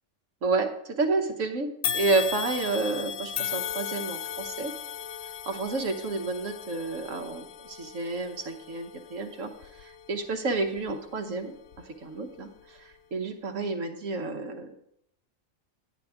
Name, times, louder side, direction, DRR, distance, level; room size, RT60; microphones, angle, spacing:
voice 1, 0.4-4.7 5.5-9.5 9.8-11.5 12.0-12.5 12.8-14.8, right 3 dB, 75° right, 5 dB, 1.4 m, -30 dB
sound 1, 1.8-11.1 11.7-11.8 12.8-12.9, left 8 dB, 60° left, 0.8 m, -36 dB
10.5 x 9.1 x 3.6 m, 0.74 s
omnidirectional pair, 1.3 m